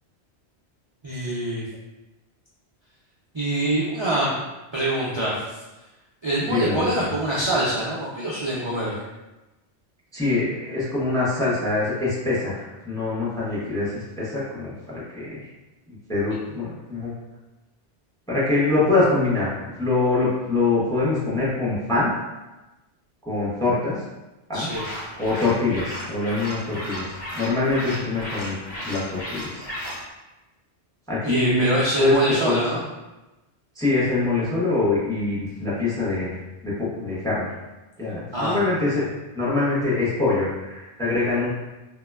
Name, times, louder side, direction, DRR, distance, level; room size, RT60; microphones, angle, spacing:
voice 1, 1.0-1.6 3.3-4.3 4.7-5.3 6.2-8.9 24.5-24.8 31.2-32.8 38.3-38.6, right 1 dB, 50° right, -8 dB, 0.3 m, -24 dB
voice 2, 6.5-7.0 10.1-15.5 16.1-17.1 18.3-19.5 19.8-22.1 23.3-24.0 24.5-24.7 25.2-28.5 28.8-29.7 31.1-32.2 32.4-32.6 33.8-36.4 36.6-37.5 38.0-39.0 39.3-41.5, left 3 dB, 5° left, -8 dB, 0.6 m, -24 dB
sound 1, 24.6-30.0, equal, 60° left, 1.1 m, -34 dB
3.6 x 2.1 x 2.2 m, 1.0 s
omnidirectional pair, 1.1 m